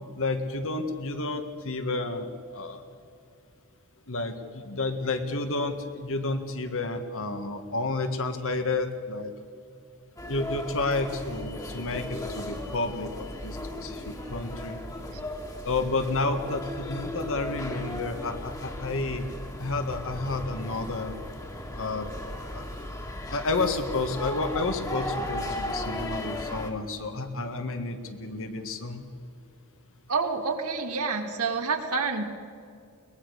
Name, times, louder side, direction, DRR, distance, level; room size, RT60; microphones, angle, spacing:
voice 1, 0.2-2.8 4.1-9.3 10.3-14.8 15.7-19.3 19.6-21.2 21.8-22.1 22.5-22.6 23.3-29.1, left 3 dB, 65° left, 7 dB, 1.8 m, -31 dB
sound 1, 10.2-26.7, left 1 dB, 15° left, 1.9 m, -36 dB
voice 2, 30.1-32.2, right 4 dB, 80° right, 4 dB, 2.3 m, -28 dB
22.0 x 20.0 x 6.6 m, 2.3 s
head